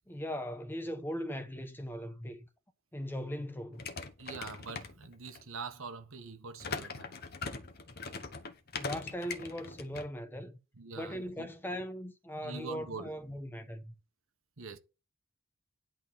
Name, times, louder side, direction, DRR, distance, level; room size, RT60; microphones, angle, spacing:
voice 1, 0.1-2.4 2.9-3.9 8.8-10.6 11.0-13.9, equal, 10° left, 0.8 m, -39 dB
sound 1, 3.7-5.4 6.6-10.1, left 4 dB, 45° left, 1.1 m, -41 dB
voice 2, 4.2-7.3 10.7-11.5 12.4-13.1 14.6-14.8, right 4 dB, 80° right, 1.3 m, -44 dB
11.0 x 3.8 x 7.0 m
head